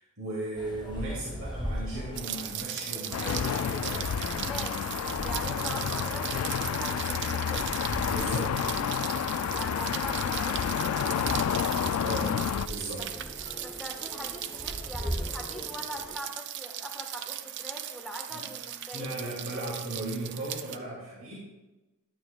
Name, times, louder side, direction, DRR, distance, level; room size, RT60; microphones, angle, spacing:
voice 1, 0.0-3.4 3.8-4.1 8.1-8.8 12.0-13.1 18.3-18.4 18.9-21.4, right 1 dB, 75° right, -6 dB, 2.5 m, -37 dB
sound 1, 0.5-16.2, equal, 20° left, 1.2 m, -41 dB
Rain, 2.2-20.8, right 11 dB, 55° right, 0.5 m, -38 dB
sound 2, 3.1-12.7, left 8 dB, 80° left, 0.3 m, -30 dB
voice 2, 3.2-3.7 4.3-7.8 9.5-11.6 13.0-13.3 13.6-19.1, equal, ahead, 0 dB, 1.4 m, -42 dB
11.5 x 9.3 x 2.3 m, 1.1 s
head